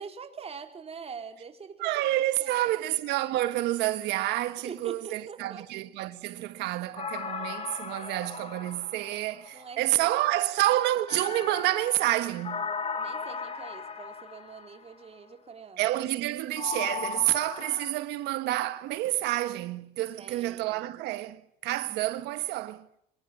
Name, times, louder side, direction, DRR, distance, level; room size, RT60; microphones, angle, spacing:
voice 1, 0.0-1.9 2.4-2.7 4.6-5.7 9.5-10.2 13.0-15.9 20.1-20.9, right 6 dB, 35° right, 4.1 m, -44 dB
voice 2, 1.8-12.6 15.8-23.0, right 15 dB, 90° right, 1.4 m, -29 dB
sound 1, 7.0-9.8 11.1-14.9 16.6-17.9, left 5 dB, 35° left, 3.9 m, -37 dB
25.0 x 22.0 x 9.3 m
cardioid pair, 110°, 17 cm